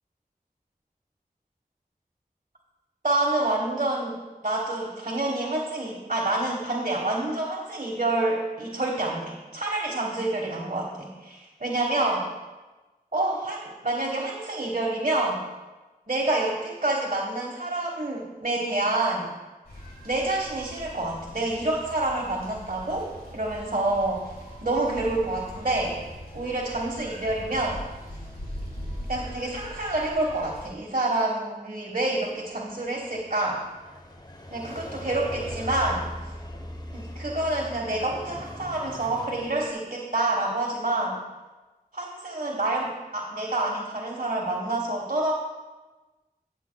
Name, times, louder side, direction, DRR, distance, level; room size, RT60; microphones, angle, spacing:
voice 1, 3.0-4.2 4.4-12.3 13.1-15.4 16.1-19.3 20.0-24.2 24.6-26.0 26.3-27.8 29.1-33.6 34.5-36.1 36.9-41.2 41.9-45.3, right 2 dB, 55° right, -4 dB, 1.3 m, -27 dB
sound 1, 19.7-30.7, equal, 75° left, 2.6 m, -41 dB
sound 2, 32.1-39.7, left 1 dB, 25° left, 0.9 m, -40 dB
16.5 x 7.0 x 2.3 m, 1.2 s
wide cardioid pair, 50°, 16 cm